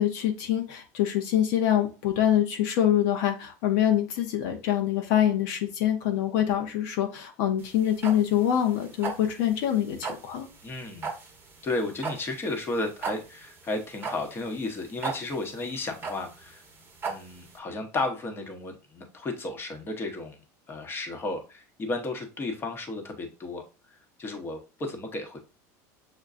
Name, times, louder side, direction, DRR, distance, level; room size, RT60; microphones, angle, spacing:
voice 1, 0.0-10.5, left 11 dB, 70° left, 4 dB, 0.7 m, -25 dB
sound 1, 7.6-17.6, right 5 dB, 20° right, 0.9 m, -37 dB
voice 2, 10.6-11.1 11.6-16.6 17.0-20.4 20.7-23.6 24.2-25.4, left 2 dB, 25° left, 4 dB, 0.9 m, -33 dB
6.5 x 2.2 x 2.4 m, 0.32 s
supercardioid pair, 115°, 9 cm